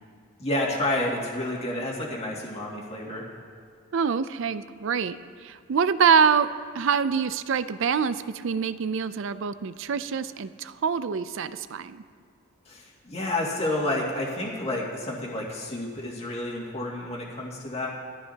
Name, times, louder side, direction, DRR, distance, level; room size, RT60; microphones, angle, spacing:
voice 1, 0.4-3.2 12.7-17.9, left 1 dB, 30° left, -3 dB, 2.1 m, -30 dB
voice 2, 3.9-5.2 5.4-12.0, right 6 dB, 60° right, 14 dB, 0.4 m, -25 dB
17.5 x 13.5 x 2.8 m, 2.4 s
head